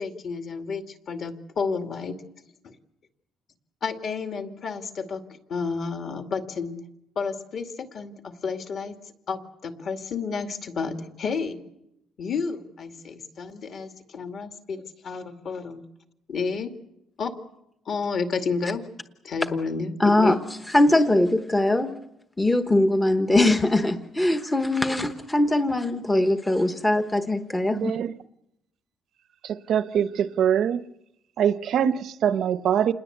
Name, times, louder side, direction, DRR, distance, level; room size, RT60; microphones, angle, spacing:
voice 1, 0.0-2.1 2.6-2.7 3.8-5.2 5.5-6.8 7.2-9.0 9.3-11.6 12.2-15.8 16.3-16.7 17.2-17.3 17.9-18.8 19.2-19.9 20.2-20.4, left 5 dB, 45° left, 2.3 m, -31 dB
voice 2, 20.0-20.4 20.7-21.9 22.4-27.9, left 1 dB, 10° left, 1.0 m, -21 dB
voice 3, 27.7-28.1 29.4-30.8 31.4-32.9, right 9 dB, 55° right, 0.9 m, -23 dB
28.5 x 21.0 x 8.1 m
cardioid pair, 175°, 0 cm